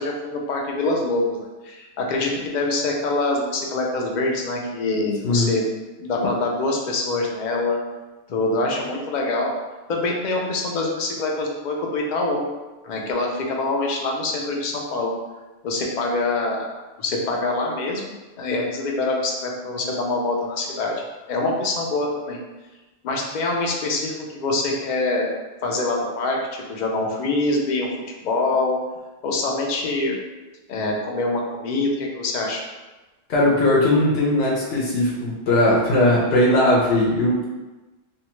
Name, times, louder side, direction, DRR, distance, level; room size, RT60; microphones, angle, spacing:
voice 1, 0.0-5.6 6.0-7.8 8.3-9.5 9.9-12.4 12.8-15.1 15.6-16.7 17.0-18.0 18.4-20.9 21.3-22.4 23.0-25.3 25.6-27.9 28.2-28.8 29.2-30.2 30.7-32.6, left 2 dB, 55° left, 0 dB, 0.5 m, -24 dB
voice 2, 33.3-37.5, left 1 dB, 75° left, -4 dB, 0.9 m, -19 dB
2.6 x 2.2 x 2.9 m, 1.2 s
omnidirectional pair, 1.1 m